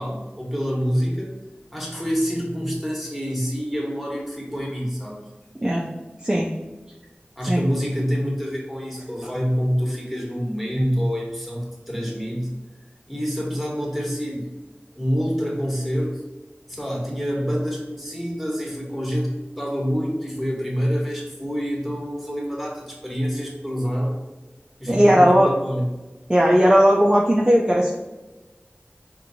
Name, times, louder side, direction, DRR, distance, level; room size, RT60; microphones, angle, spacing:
voice 1, 0.0-1.3 1.7-5.3 7.4-12.6 13.1-14.5 14.9-16.2 16.7-24.2 24.8-25.8, equal, ahead, -3 dB, 1.2 m, -26 dB
voice 2, 24.9-25.5 26.3-27.9, equal, 20° right, -2 dB, 0.4 m, -17 dB
4.3 x 2.6 x 2.6 m, 1.1 s
wide cardioid pair, 40°, 4 cm